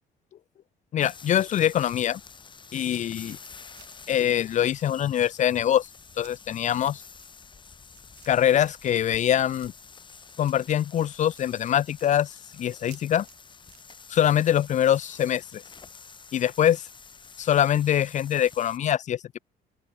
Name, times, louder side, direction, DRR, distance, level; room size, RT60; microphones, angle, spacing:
voice 1, 0.9-2.2 2.7-3.4 4.1-5.9 6.2-7.0 8.3-9.7 10.4-13.3 14.1-15.6 16.3-16.8 17.4-19.4, left 10 dB, 45° left, 0.5 m, -24 dB
sound 1, 1.0-18.8, left 5 dB, 30° left, 2.1 m, -48 dB
sound 2, 2.7-15.4, right 18 dB, 85° right, 5.3 m, -59 dB
open air
cardioid pair, 110°, 17 cm